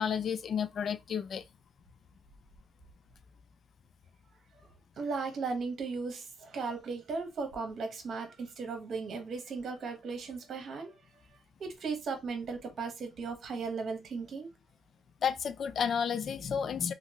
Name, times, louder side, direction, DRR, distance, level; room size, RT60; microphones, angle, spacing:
voice 1, 0.0-1.4 15.2-16.9, left 7 dB, 55° left, 0.3 m, -31 dB
voice 2, 5.0-10.9 11.6-14.5, right 4 dB, 60° right, 1.0 m, -36 dB
2.9 x 2.6 x 2.8 m
cardioid pair, 90°, 0 cm